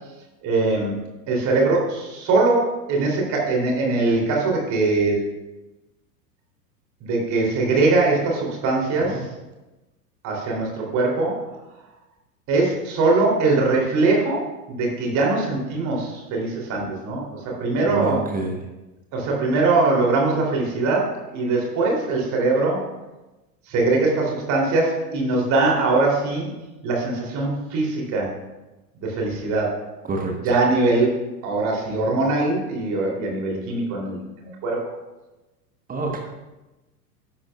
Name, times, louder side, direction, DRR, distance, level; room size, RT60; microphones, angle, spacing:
voice 1, 0.4-5.2 7.0-9.3 10.2-11.5 12.5-18.3 19.1-22.9 23.7-26.5 26.8-28.3 28.9-29.8 30.4-34.9, right 3 dB, 35° right, -1 dB, 3.2 m, -22 dB
voice 2, 17.8-18.6 30.1-30.3 35.9-36.2, right 2 dB, 15° right, 2 dB, 1.2 m, -27 dB
12.0 x 10.5 x 2.4 m, 1.1 s
figure-of-eight pair, 90°, 48 cm